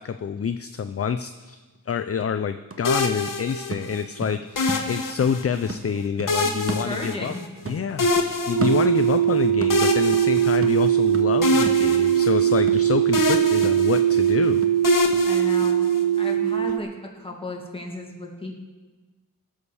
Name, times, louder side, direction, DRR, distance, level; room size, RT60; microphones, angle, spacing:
voice 1, 0.0-7.3 7.7-14.6, left 7 dB, 40° left, 9 dB, 0.5 m, -27 dB
sound 1, 1.7-1.8 2.2-5.4 5.7-7.4 7.6-9.3 9.6-15.3 15.6-15.7, right 2 dB, 35° right, 1.0 m, -36 dB
sound 2, 2.8-4.0 4.6-5.7 6.3-7.6 8.0-9.2 9.7-11.1 11.4-12.8 13.1-14.3 14.8-16.2, left 3 dB, 60° left, 1.3 m, -26 dB
voice 2, 6.8-7.4 15.2-15.9 16.2-18.5, left 2 dB, 15° left, 0 dB, 2.4 m, -34 dB
sound 3, 8.5-16.8, right 10 dB, 80° right, 0.8 m, -20 dB
16.5 x 6.4 x 7.0 m, 1.3 s
wide cardioid pair, 90°, 36 cm